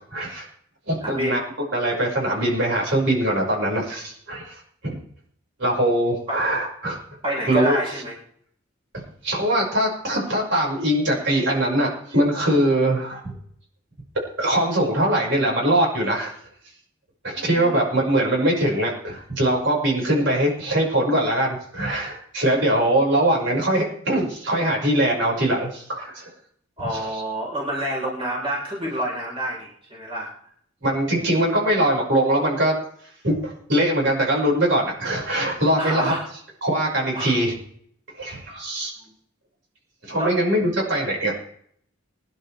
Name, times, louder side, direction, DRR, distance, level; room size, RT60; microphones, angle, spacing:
voice 1, 0.1-0.5 0.9-1.4 1.7-4.6 4.8-4.9 5.6-7.0 7.5-7.8 9.2-13.4 14.4-16.3 17.2-26.3 26.9-27.2 30.8-32.7 33.2-36.1 36.6-37.5 38.2-38.9 40.0-41.3, right 1 dB, 60° right, -2 dB, 6.0 m, -22 dB
voice 2, 1.0-1.4 6.3-6.4 7.2-8.1 17.4-17.8 26.8-30.3 35.8-36.2 37.1-37.3 40.2-40.3, right 1 dB, 25° right, -3 dB, 4.4 m, -28 dB
23.0 x 11.0 x 3.5 m, 0.65 s
head